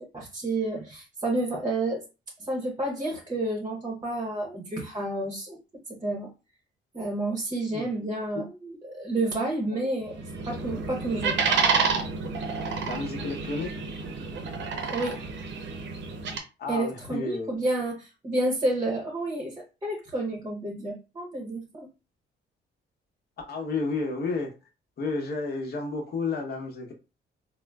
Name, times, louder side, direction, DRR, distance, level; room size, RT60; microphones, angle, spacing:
voice 1, 0.1-2.0 2.4-5.6 5.9-6.3 6.9-11.4 14.9-15.2 16.7-19.5 19.8-21.9, right 2 dB, 20° right, 1 dB, 0.8 m, -30 dB
voice 2, 7.7-8.1 9.7-9.9 12.9-13.7 16.6-17.5 23.5-24.5 25.0-26.9, left 3 dB, 55° left, 2 dB, 1.0 m, -31 dB
sound 1, 10.1-16.4, right 5 dB, 70° right, 0.7 m, -29 dB
3.6 x 2.0 x 2.3 m, 0.29 s
cardioid pair, 90°, 20 cm